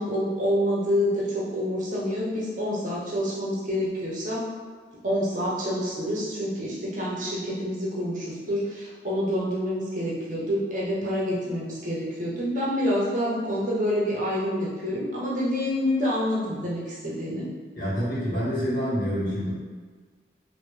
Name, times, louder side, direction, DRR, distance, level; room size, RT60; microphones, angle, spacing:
voice 1, 0.0-4.5 5.0-17.5, equal, 45° right, -6 dB, 0.8 m, -27 dB
voice 2, 17.7-19.5, equal, 50° left, -9 dB, 1.3 m, -27 dB
3.2 x 2.6 x 3.2 m, 1.5 s
head